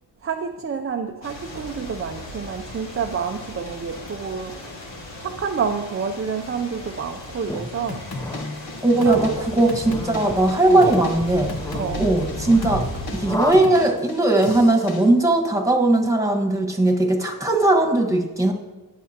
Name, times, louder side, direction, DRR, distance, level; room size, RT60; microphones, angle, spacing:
voice 1, 0.2-4.7 5.2-8.0 9.0-9.2 9.5-9.7 11.7-12.1, right 6 dB, 30° right, 5 dB, 0.5 m, -29 dB
sound 1, 1.2-13.4, equal, 90° left, 2.0 m, -36 dB
sound 2, 7.5-13.5, left 1 dB, 10° left, 0.6 m, -33 dB
sound 3, 7.9-15.1, left 3 dB, 60° left, 1.2 m, -36 dB
voice 2, 8.8-11.5 12.0-12.8 13.1-18.5, right 2 dB, 5° right, 4 dB, 1.4 m, -19 dB
19.5 x 7.6 x 2.9 m, 1.1 s
wide cardioid pair, 110°, 42 cm